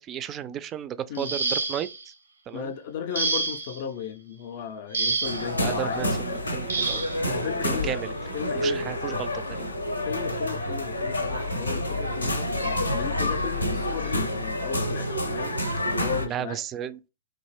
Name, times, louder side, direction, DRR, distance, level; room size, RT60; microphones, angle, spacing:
voice 1, 0.0-2.1 2.5-2.7 5.6-7.1 7.6-8.1 8.5-9.7 16.3-17.0, right 10 dB, 25° right, 0.3 m, -34 dB
sound 1, 1.1-2.0 3.1-3.8 4.9-5.5 6.7-7.2 8.4-8.5 9.0-9.2, right 3 dB, 75° right, 0.6 m, -28 dB
voice 2, 2.5-6.1 7.2-8.0 8.3-9.2 10.0-12.5 12.9-15.6 15.9-16.6, left 8 dB, 50° left, 0.4 m, -35 dB
sound 2, 5.2-16.3, left 1 dB, 90° left, 0.6 m, -28 dB
3.5 x 2.5 x 3.2 m
figure-of-eight pair, 110°, 0 cm